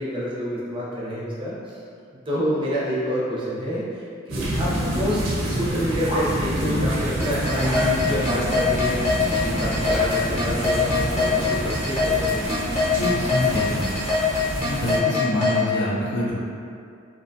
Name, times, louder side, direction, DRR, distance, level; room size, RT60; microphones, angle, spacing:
voice 1, 0.0-1.8 2.3-9.0 9.4-12.6, equal, 25° right, -8 dB, 0.4 m, -28 dB
sound 1, 4.3-15.0, right 1 dB, 80° right, 0.5 m, -27 dB
sound 2, 5.7-11.4, equal, 80° left, 0.8 m, -36 dB
sound 3, 7.2-15.6, left 3 dB, 35° left, 0.7 m, -23 dB
voice 2, 13.0-13.9 14.6-16.3, left 1 dB, 60° left, -6 dB, 0.4 m, -26 dB
2.5 x 2.2 x 2.5 m, 2.4 s
head